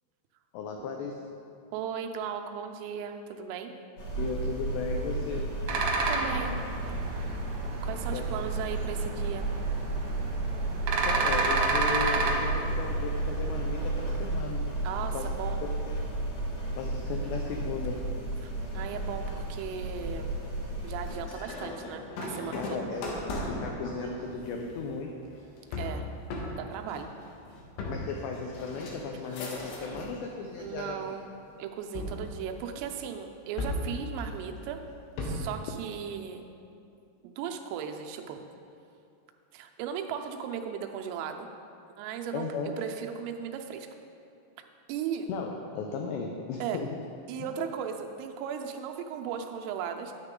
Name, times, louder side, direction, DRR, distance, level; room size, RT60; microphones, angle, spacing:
voice 1, 0.5-1.3 4.2-5.5 8.1-8.3 11.1-14.6 15.1-15.3 15.6-16.0 16.8-18.0 22.5-23.1 23.4-25.2 27.9-31.2 42.3-42.7 45.3-46.9, left 4 dB, 90° left, 2 dB, 2.4 m, -36 dB
voice 2, 1.7-3.8 6.1-6.6 7.2-7.4 7.8-9.5 14.8-15.7 18.4-20.3 20.8-22.8 25.8-26.1 26.6-27.1 29.3-29.4 30.6-31.2 31.6-34.8 35.2-36.4 37.2-38.4 39.5-41.5 42.0-42.5 42.8-43.9 44.9-45.3 46.6-46.8 47.3-50.1, right 8 dB, 90° right, 5 dB, 3.3 m, -36 dB
sound 1, 4.0-21.2, right 2 dB, 45° left, 2.3 m, -33 dB
sound 2, 5.7-14.3, right 3 dB, 75° right, 2.3 m, -31 dB
sound 3, 21.0-30.2 30.6-31.2 32.0-33.0 33.6-35.6, left 2 dB, 75° left, 3.1 m, -37 dB
9.7 x 9.5 x 3.7 m, 2.5 s
omnidirectional pair, 5.7 m